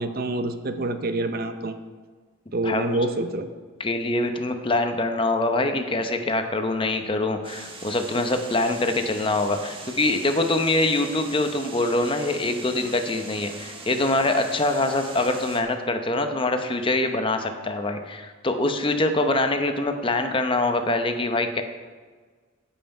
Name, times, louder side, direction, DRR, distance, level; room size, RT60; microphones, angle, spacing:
voice 1, 0.0-1.7 2.5-3.5, right 2 dB, 45° right, 8 dB, 0.7 m, -27 dB
voice 2, 3.8-21.6, left 2 dB, 25° left, 7 dB, 0.8 m, -24 dB
sound 1, 7.4-15.6, right 3 dB, 25° right, 1.2 m, -41 dB
15.5 x 5.8 x 5.4 m, 1.5 s
head